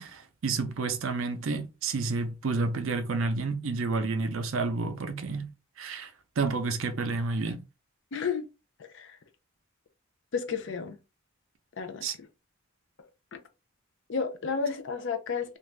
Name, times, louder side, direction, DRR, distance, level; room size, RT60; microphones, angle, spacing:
voice 1, 0.0-5.5 5.8-6.1 6.4-7.6 12.0-12.2, right 3 dB, 65° right, 0.5 m, -30 dB
voice 2, 8.1-8.4 8.8-9.2 10.3-11.0 11.8-12.0 13.3-13.4 14.1-15.6, left 5 dB, 60° left, 0.5 m, -32 dB
2.5 x 2.3 x 3.2 m
head